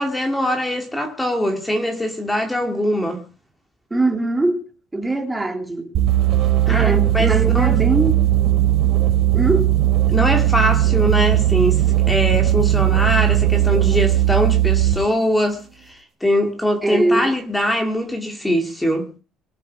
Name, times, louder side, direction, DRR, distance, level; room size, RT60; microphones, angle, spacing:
voice 1, 0.0-3.2 6.7-7.8 10.1-15.6 15.9-19.1, equal, 5° left, 2.8 m, -22 dB
voice 2, 3.9-4.6 4.9-5.9 6.7-8.1 9.3-9.7 16.8-17.3, right 2 dB, 10° right, 3.2 m, -21 dB
sound 1, 5.9-15.1, right 14 dB, 60° right, 5.6 m, -17 dB
24.0 x 8.2 x 4.8 m
cardioid pair, 140°, 0 cm